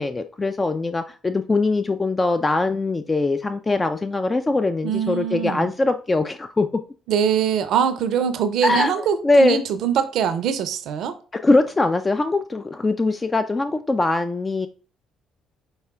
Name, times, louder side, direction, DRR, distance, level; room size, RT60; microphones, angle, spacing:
voice 1, 0.0-6.7 8.6-8.9 9.2-9.6 11.3-14.7, left 2 dB, 25° left, 0.3 m, -21 dB
voice 2, 4.8-5.7 7.1-11.1, right 8 dB, 60° right, 0.5 m, -23 dB
5.5 x 3.3 x 2.3 m
hypercardioid pair, 50°, 0 cm